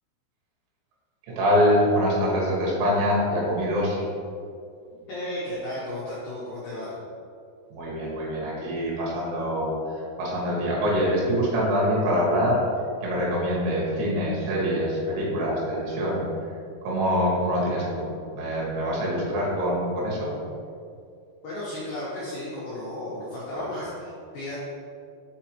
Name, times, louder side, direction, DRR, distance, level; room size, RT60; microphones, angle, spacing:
voice 1, 1.4-4.0 7.7-9.7 10.2-12.6 13.0-16.2 16.8-20.3 23.5-23.6, equal, 75° right, -5 dB, 3.7 m, -24 dB
voice 2, 5.1-6.9 21.4-24.6, left 1 dB, 85° left, -8 dB, 2.0 m, -34 dB
6.8 x 5.0 x 2.9 m, 2.4 s
omnidirectional pair, 5.5 m